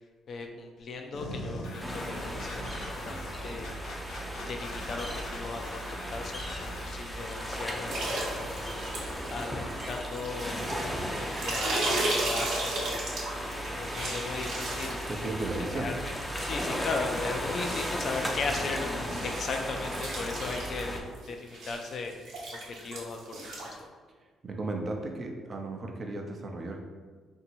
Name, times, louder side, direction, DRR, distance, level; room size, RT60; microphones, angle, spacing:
voice 1, 0.3-3.7 4.5-8.1 8.3-8.8 9.3-10.6 11.2-13.1 13.5-15.0 15.4-16.1 16.4-18.9 19.2-22.1 22.5-23.7, left 4 dB, 55° left, 4 dB, 0.5 m, -37 dB
sound 1, 1.1-9.1, left 1 dB, 85° left, 0.9 m, -42 dB
sound 2, 1.8-21.0, equal, 5° left, 0.6 m, -36 dB
sound 3, 7.9-16.0 16.4-23.8, right 2 dB, 80° right, 0.8 m, -36 dB
voice 2, 15.1-15.9 24.4-26.8, right 2 dB, 40° right, 2 dB, 0.6 m, -35 dB
3.0 x 2.7 x 4.5 m, 1.5 s
cardioid pair, 90°, 0 cm